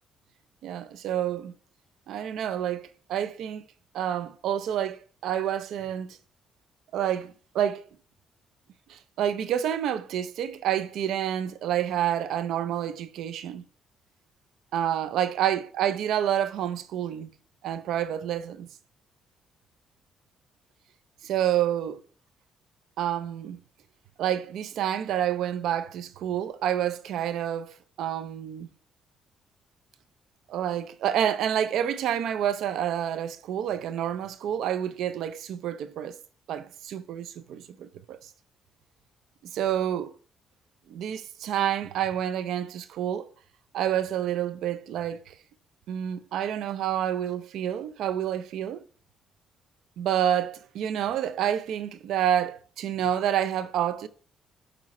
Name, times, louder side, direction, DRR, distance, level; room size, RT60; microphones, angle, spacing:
voice 1, 0.6-1.5 2.1-3.6 3.9-6.2 6.9-7.8 8.9-13.6 14.7-17.3 17.6-18.7 21.2-22.0 23.0-23.6 24.2-28.7 30.5-36.2 36.5-38.2 39.5-40.1 40.9-43.3 43.7-45.3 45.9-48.8 50.0-54.1, right 10 dB, 80° right, 0.5 m, -28 dB
7.7 x 2.9 x 4.2 m
cardioid pair, 90°, 0 cm